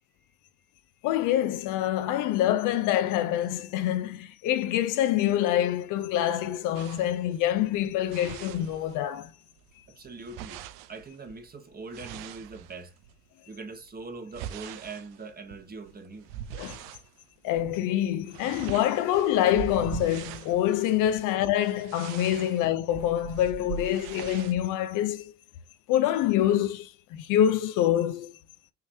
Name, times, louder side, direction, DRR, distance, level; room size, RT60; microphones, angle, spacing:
voice 1, 1.0-9.3 16.5-16.8 17.4-25.3 25.9-28.3, left 12 dB, 70° left, 0.7 m, -26 dB
sound 1, 6.7-9.3 9.6-13.2 13.7-17.1 17.5-17.8 18.0-24.6, right 10 dB, 75° right, 0.6 m, -42 dB
voice 2, 9.9-10.6 10.9-12.9 13.5-16.3 22.3-22.5, right 3 dB, 30° right, 1.3 m, -42 dB
5.8 x 3.2 x 2.7 m
supercardioid pair, 70°, 33 cm